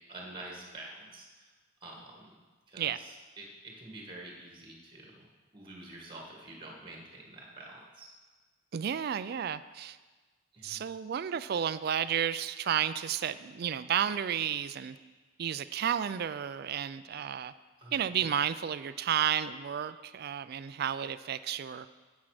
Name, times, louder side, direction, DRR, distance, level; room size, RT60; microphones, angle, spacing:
voice 1, 0.1-1.5 1.8-2.3 2.7-5.3 5.5-8.1 10.5-10.8 17.8-17.9 18.2-18.4, right 2 dB, 25° right, -1 dB, 1.6 m, -47 dB
voice 2, 8.7-10.0 10.6-15.0 15.4-17.5 17.9-21.9, right 9 dB, 50° right, 14 dB, 0.3 m, -32 dB
10.0 x 7.3 x 4.9 m, 1.3 s
head